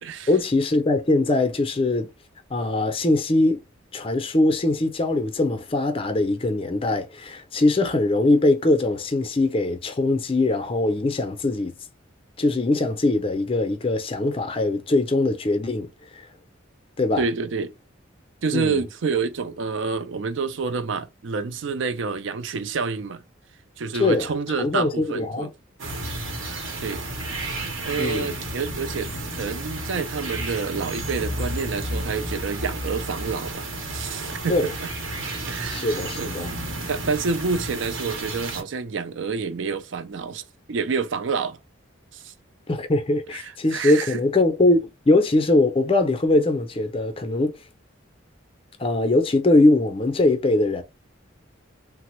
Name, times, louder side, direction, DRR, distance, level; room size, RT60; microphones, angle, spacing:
voice 1, 0.3-2.1 2.5-3.6 3.9-11.7 12.4-15.9 16.2-16.3 17.0-17.2 18.5-18.8 24.0-24.3 24.6-25.5 28.0-28.4 34.5-34.7 35.7-36.5 42.7-47.5 48.8-50.8, left 2 dB, 30° left, 0.5 m, -21 dB
voice 2, 17.2-17.7 18.4-23.2 23.8-25.5 26.8-27.0 27.8-34.9 35.5-36.3 36.9-41.6 42.1-42.3 43.3-44.2, right 5 dB, 65° right, 0.4 m, -28 dB
sound 1, 25.8-38.6, right 1 dB, 85° right, 0.9 m, -31 dB
3.2 x 2.0 x 3.0 m
head